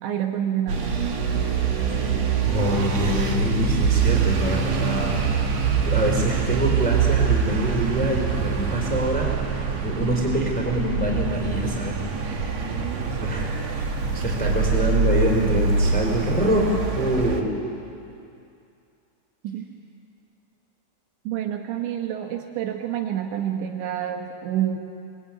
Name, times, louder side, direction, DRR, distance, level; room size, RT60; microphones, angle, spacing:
voice 1, 0.0-0.9 19.4-19.6 21.2-24.8, right 10 dB, 80° right, 3 dB, 3.5 m, -28 dB
sound 1, 0.7-17.4, right 5 dB, 50° right, 2.2 m, -24 dB
voice 2, 1.9-5.5 5.8-12.7 13.1-13.9 14.1-17.5, equal, ahead, 0 dB, 3.8 m, -26 dB
28.0 x 21.5 x 9.5 m, 2.5 s
omnidirectional pair, 5.1 m